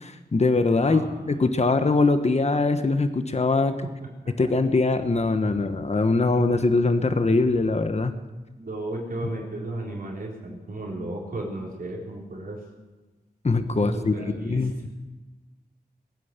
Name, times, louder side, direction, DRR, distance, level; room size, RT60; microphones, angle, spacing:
voice 1, 0.0-3.7 4.3-8.1 13.4-14.9, left 3 dB, 40° left, 9 dB, 1.2 m, -22 dB
voice 2, 0.8-1.3 8.6-12.6 13.7-14.9, right 1 dB, 65° right, -2 dB, 3.9 m, -35 dB
21.5 x 9.3 x 6.7 m, 1.2 s
wide cardioid pair, 75°, 16 cm